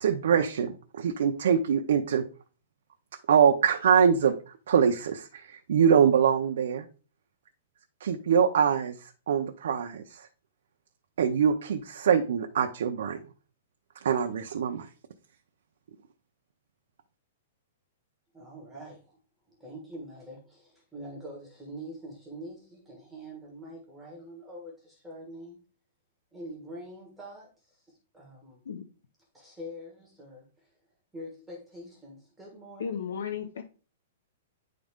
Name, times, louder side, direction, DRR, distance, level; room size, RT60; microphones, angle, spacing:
voice 1, 0.0-2.2 3.3-4.3 4.7-6.8 8.0-8.9 9.3-10.3 11.2-13.2 14.0-14.9, right 7 dB, 65° right, 0.7 m, -24 dB
voice 2, 18.3-19.2 19.5-25.6 26.3-28.6 29.3-30.7 31.1-33.3, equal, ahead, 1.7 m, -45 dB
voice 3, 32.8-33.6, left 7 dB, 90° left, 0.8 m, -34 dB
10.0 x 3.8 x 3.6 m
hypercardioid pair, 175°, 0 cm